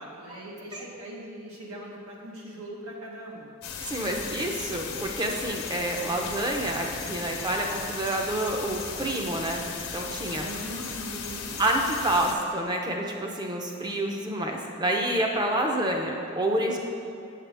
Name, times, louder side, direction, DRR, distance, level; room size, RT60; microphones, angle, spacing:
voice 1, 0.0-3.5 10.3-11.6, right 1 dB, 85° right, -3 dB, 1.5 m, -40 dB
sound 1, 3.6-12.3, left 6 dB, 85° left, 1.0 m, -36 dB
voice 2, 3.8-9.7 9.9-10.4 11.6-16.8, right 1 dB, 20° right, 1 dB, 0.6 m, -28 dB
7.8 x 7.4 x 3.4 m, 2.7 s
head